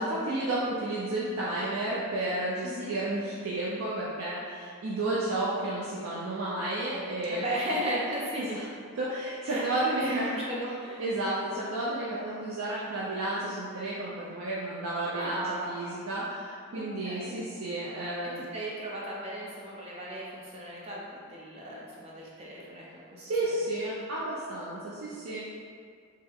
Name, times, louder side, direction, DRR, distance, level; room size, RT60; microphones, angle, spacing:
voice 1, 0.0-7.4 8.4-8.6 9.0-10.4 11.0-18.4 23.2-25.4, right 2 dB, 75° right, -7 dB, 0.5 m, -32 dB
voice 2, 2.6-3.0 7.3-8.4 9.4-11.0 15.0-15.8 16.7-17.3 18.4-23.2, right 1 dB, 30° right, -5 dB, 0.6 m, -36 dB
4.3 x 2.0 x 3.5 m, 2.2 s
head